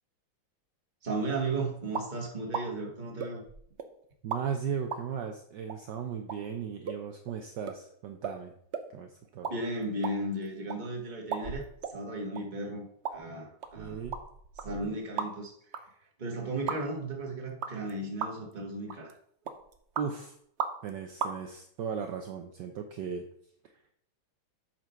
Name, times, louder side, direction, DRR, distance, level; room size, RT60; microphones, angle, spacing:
voice 1, 1.0-3.4 9.5-11.6 11.9-12.9 13.1-14.0 14.6-15.5 16.2-19.1, right 2 dB, 25° right, 0 dB, 1.6 m, -35 dB
sound 1, 1.9-2.1 2.5-2.7 3.2-3.9 4.3-4.4 4.9-5.0 5.7-5.8 6.3-6.4 6.9-7.0 7.3-7.4 7.7-7.8 8.2-8.4 8.7-8.9 9.3-9.6 9.8-10.8 11.3-12.0 12.4-12.5 13.0-13.2 13.6-15.5 15.7-15.8 16.7-16.8 17.6-17.9 18.2-18.5 18.9-19.1 19.5-20.1 20.6-20.9 21.2-21.3, right 6 dB, 85° right, 0.6 m, -35 dB
voice 2, 4.2-8.5 8.9-9.5 13.8-14.2 20.0-20.3 20.8-23.2, right 7 dB, 70° right, 5 dB, 1.2 m, -36 dB
7.7 x 4.6 x 5.7 m, 0.65 s
omnidirectional pair, 2.2 m